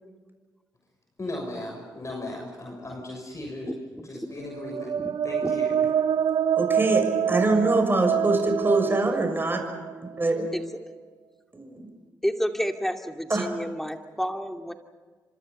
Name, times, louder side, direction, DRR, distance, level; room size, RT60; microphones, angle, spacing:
voice 1, 1.2-3.7 4.0-4.9 5.2-5.8, left 2 dB, 40° left, 0 dB, 6.8 m, -36 dB
sound 1, 4.5-10.3, right 8 dB, 60° right, 0.7 m, -26 dB
voice 2, 6.6-9.6 10.2-10.4 11.5-11.9 13.3-13.5, right 2 dB, 25° right, 4 dB, 6.7 m, -24 dB
voice 3, 12.2-14.7, equal, 5° left, 4 dB, 2.7 m, -29 dB
29.5 x 26.0 x 5.5 m, 1.4 s
hypercardioid pair, 40°, 8 cm